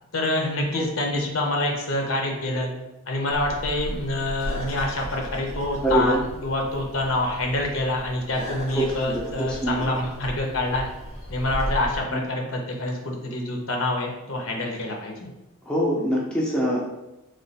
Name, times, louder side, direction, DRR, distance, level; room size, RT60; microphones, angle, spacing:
voice 1, 0.1-2.7 3.1-10.8 11.3-15.3, left 1 dB, 65° left, 1 dB, 0.7 m, -26 dB
sound 1, 3.3-12.0, equal, 85° left, 1.4 m, -35 dB
voice 2, 5.8-6.2 8.7-9.9 12.1-12.2 15.7-16.8, right 1 dB, 5° left, -4 dB, 0.4 m, -24 dB
3.2 x 2.3 x 4.0 m, 0.96 s
head